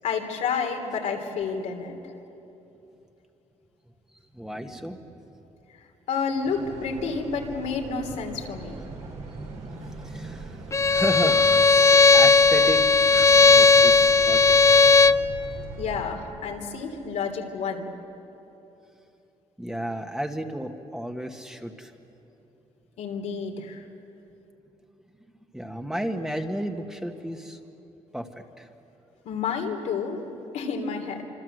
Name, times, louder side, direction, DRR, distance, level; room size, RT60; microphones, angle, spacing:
voice 1, 0.0-2.1 6.1-8.8 15.8-17.9 23.0-23.8 29.2-30.2 30.5-31.2, left 5 dB, 85° left, 1 dB, 3.2 m, -30 dB
voice 2, 4.3-5.3 9.0-14.8 19.6-21.9 25.5-27.6 28.1-28.7, equal, 5° right, 4 dB, 1.7 m, -33 dB
sound 1, 6.4-16.0, right 4 dB, 80° right, 4.6 m, -41 dB
Bowed string instrument, 10.7-15.3, left 4 dB, 25° left, 0.7 m, -16 dB
26.0 x 26.0 x 8.0 m, 3.0 s
cardioid pair, 95°, 12 cm